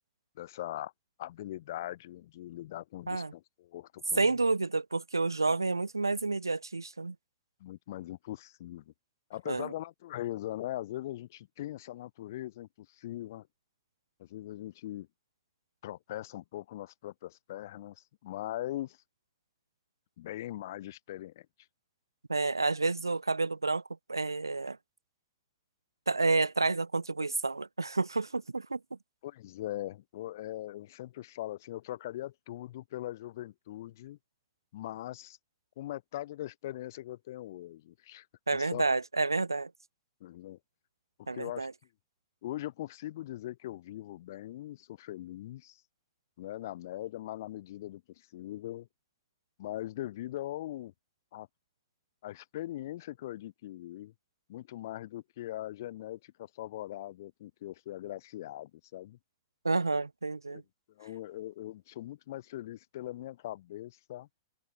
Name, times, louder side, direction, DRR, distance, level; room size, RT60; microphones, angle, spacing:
voice 1, 0.4-0.9 1.2-4.4 7.6-8.9 9.3-13.5 14.2-15.1 15.8-19.0 20.2-21.5 29.2-34.2 34.7-35.4 35.8-38.3 38.5-38.8 40.2-40.6 41.3-41.7 42.4-45.8 46.4-48.9 49.6-50.9 51.3-51.5 52.2-54.1 54.5-59.2 60.5-60.6 61.0-64.3, left 14 dB, 50° left, 4.4 m, -41 dB
voice 2, 4.2-7.1 9.5-9.7 22.3-23.8 24.1-24.8 26.1-28.8 38.5-39.7 41.3-41.7 59.6-60.6, right 3 dB, 80° right, 0.8 m, -29 dB
figure-of-eight pair, 100°, 2 cm